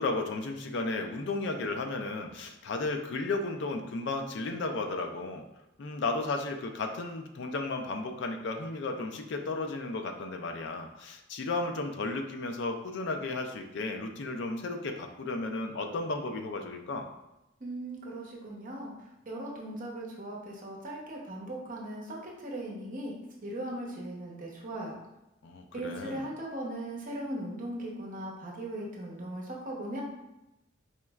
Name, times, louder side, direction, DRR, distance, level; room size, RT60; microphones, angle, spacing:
voice 1, 0.0-5.4 5.8-17.1 25.4-26.3, left 3 dB, 60° left, 5 dB, 0.4 m, -34 dB
voice 2, 17.6-18.9 19.3-22.2 22.4-23.1 23.4-25.0 25.7-30.0, right 1 dB, 40° right, -2 dB, 0.7 m, -38 dB
4.3 x 3.0 x 2.3 m, 0.92 s
head